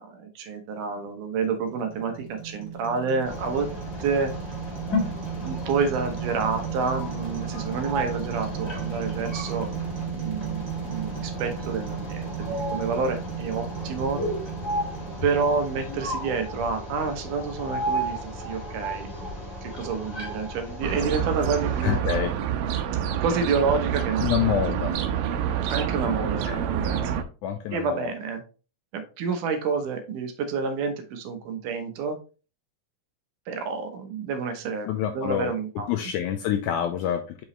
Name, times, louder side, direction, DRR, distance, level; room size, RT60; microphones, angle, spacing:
voice 1, 0.0-3.7 4.0-4.3 5.4-9.7 10.1-14.2 15.2-19.1 19.6-22.3 23.2-24.5 24.8-24.9 25.7-27.2 27.7-28.4 28.9-32.2 33.5-35.9, right 5 dB, 70° right, 7 dB, 2.3 m, -29 dB
sound 1, 1.4-16.6, right 7 dB, 30° right, 2.7 m, -35 dB
electronic generated voices and ambience sounds, 3.2-22.0, equal, 30° left, 1.7 m, -34 dB
sound 2, 20.8-27.2, right 9 dB, 85° right, 2.4 m, -27 dB
voice 2, 21.8-22.3 24.2-24.9 26.1-26.2 26.5-26.6 27.4-28.1 34.9-35.5 35.9-37.4, left 10 dB, 80° left, 6 dB, 1.8 m, -27 dB
5.9 x 5.4 x 3.1 m, 0.34 s
omnidirectional pair, 4.0 m